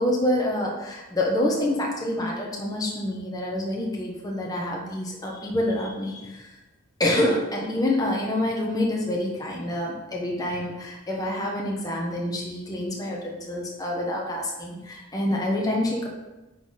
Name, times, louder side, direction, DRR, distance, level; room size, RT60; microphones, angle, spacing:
voice 1, 0.0-6.6 7.0-16.1, left 1 dB, 15° left, -2 dB, 1.1 m, -27 dB
9.9 x 4.2 x 4.2 m, 1.1 s
head